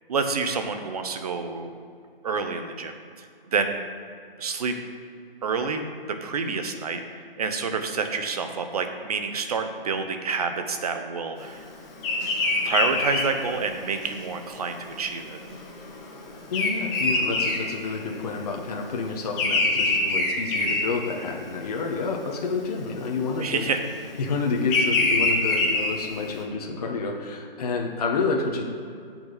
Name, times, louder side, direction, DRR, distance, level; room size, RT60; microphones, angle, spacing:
voice 1, 0.1-1.7 2.2-3.8 4.4-4.8 5.4-11.7 12.6-15.4 23.4-23.8, right 5 dB, 40° right, 6 dB, 1.1 m, -28 dB
Bird vocalization bird call bird song, 12.0-18.4 18.7-21.6 22.0-22.4 23.4-26.3, left 3 dB, 5° left, 0.6 m, -25 dB
voice 2, 16.5-23.6 24.2-28.6, left 4 dB, 40° left, 0 dB, 1.4 m, -29 dB
15.5 x 6.1 x 4.1 m, 2.3 s
hypercardioid pair, 160°, 29 cm